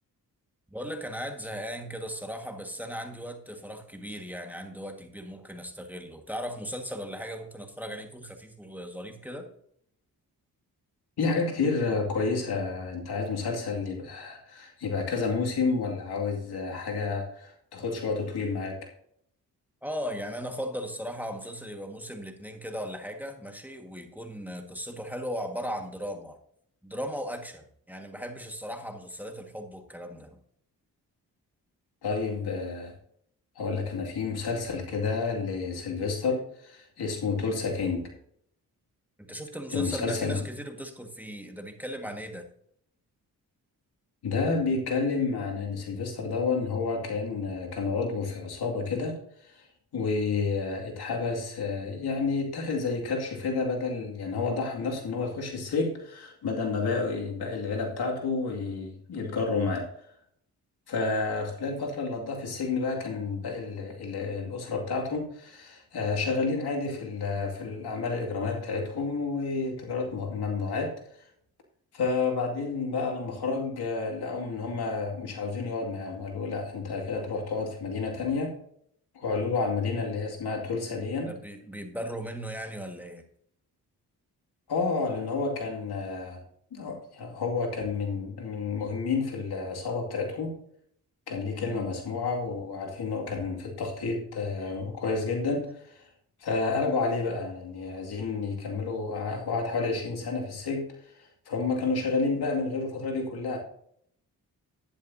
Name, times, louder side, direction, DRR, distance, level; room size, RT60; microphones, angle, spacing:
voice 1, 0.7-9.5 19.8-26.4 26.8-30.4 39.2-42.4 81.2-83.2 91.6-91.9, equal, 5° right, 4 dB, 1.8 m, -37 dB
voice 2, 11.2-18.8 32.0-32.9 33.6-38.1 39.7-40.4 44.2-49.2 49.4-49.6 49.9-59.9 60.9-71.0 71.9-78.6 79.1-81.3 84.7-86.4 86.7-90.6 91.3-96.0 96.4-100.9 101.5-103.6, left 4 dB, 75° left, 0 dB, 2.4 m, -30 dB
11.5 x 10.5 x 2.8 m, 0.67 s
cardioid pair, 55°, 39 cm